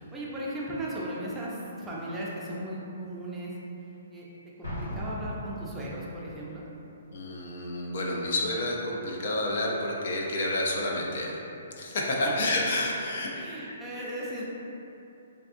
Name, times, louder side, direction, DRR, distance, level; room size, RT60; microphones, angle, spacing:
voice 1, 0.0-3.5 4.1-4.2 4.6-6.6 12.2-12.3 13.3-14.5, right 1 dB, 10° right, -6 dB, 0.5 m, -36 dB
Explosion, 4.6-6.2, left 1 dB, 75° left, 1.3 m, -37 dB
voice 2, 7.1-11.4 11.8-13.3 13.7-13.8, left 1 dB, 60° left, -2 dB, 0.5 m, -29 dB
3.4 x 2.7 x 2.5 m, 2.9 s
hypercardioid pair, 145°, 0 cm